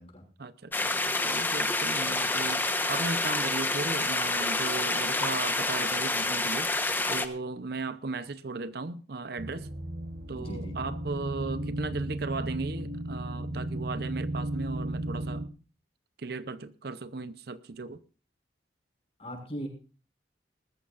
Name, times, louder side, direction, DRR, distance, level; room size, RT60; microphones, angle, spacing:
voice 1, 0.4-6.7 7.1-9.7 10.3-15.4 16.2-18.0, right 3 dB, 60° right, 0.7 m, -36 dB
sound 1, 0.7-7.3, left 2 dB, 10° left, 1.0 m, -28 dB
sound 2, 9.4-15.5, right 1 dB, 75° right, 1.6 m, -35 dB
voice 2, 10.3-10.8 19.2-19.7, equal, 35° left, 5.8 m, -39 dB
20.5 x 14.0 x 2.5 m
head